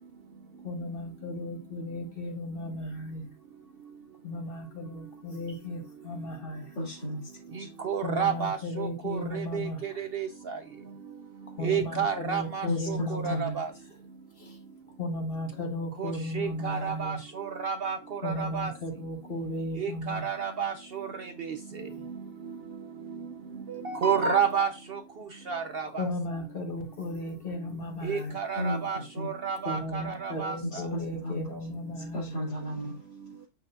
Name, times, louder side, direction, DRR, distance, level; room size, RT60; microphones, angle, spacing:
voice 1, 0.6-3.3 4.2-6.8 8.0-10.0 11.5-13.5 14.4-14.6 15.0-17.2 18.2-20.3 25.8-28.4 29.6-32.4, left 1 dB, 35° left, 3 dB, 1.4 m, -35 dB
voice 2, 6.8-7.2 7.6-7.7 12.7-12.8 13.3-13.6 28.6-28.8 29.2-29.3 30.6-30.8 31.2-31.4 32.1-33.0, left 1 dB, 90° left, -6 dB, 3.1 m, -33 dB
voice 3, 7.5-10.6 11.6-13.7 16.0-18.7 19.8-21.6 23.7-25.0 25.5-26.1 28.0-30.6, right 6 dB, 75° right, 9 dB, 0.5 m, -31 dB
8.4 x 6.7 x 2.5 m, 0.27 s
omnidirectional pair, 1.7 m